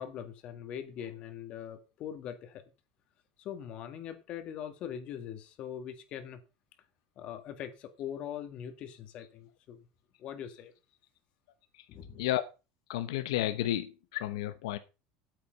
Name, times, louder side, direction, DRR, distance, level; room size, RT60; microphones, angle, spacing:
voice 1, 0.0-2.6 3.4-6.4 7.2-9.8 10.2-10.7 11.9-12.2, left 9 dB, 50° left, 1.9 m, -42 dB
voice 2, 12.9-14.8, left 13 dB, 90° left, 0.9 m, -32 dB
8.7 x 8.5 x 5.3 m
supercardioid pair, 125°, 3 cm